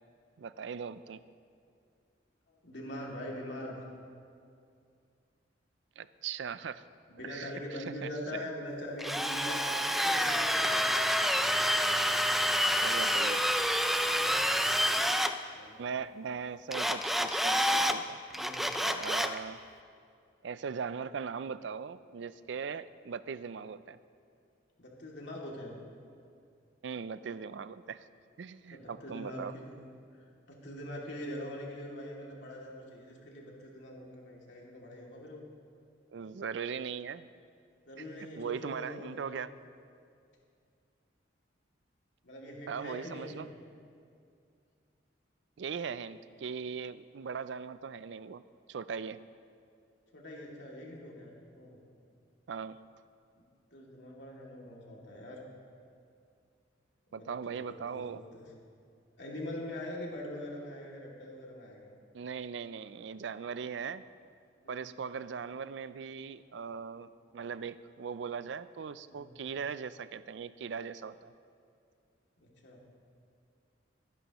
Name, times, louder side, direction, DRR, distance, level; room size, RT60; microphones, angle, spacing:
voice 1, 0.4-1.2 6.0-6.8 7.2-8.5 12.8-13.4 15.8-18.2 18.8-19.6 20.4-24.0 26.8-28.1 28.4-29.5 36.1-37.3 38.4-39.5 42.7-43.5 45.6-48.4 48.7-49.2 52.5-52.8 57.1-58.2 62.1-64.0 64.7-71.3, right 6 dB, 75° right, 15 dB, 0.4 m, -39 dB
voice 2, 2.5-3.9 7.1-10.9 14.0-14.3 15.5-15.8 18.3-18.6 24.8-25.7 28.7-29.7 30.5-35.5 37.9-39.4 42.2-43.5 50.1-51.8 53.7-55.4 57.1-58.4 59.2-61.9 64.6-64.9 69.1-69.4 72.4-72.8, left 1 dB, 75° left, -3 dB, 2.5 m, -43 dB
Drill, 9.0-15.3 16.7-18.0 18.3-19.4, equal, ahead, 0.3 m, -28 dB
24.0 x 10.5 x 3.0 m, 2.4 s
head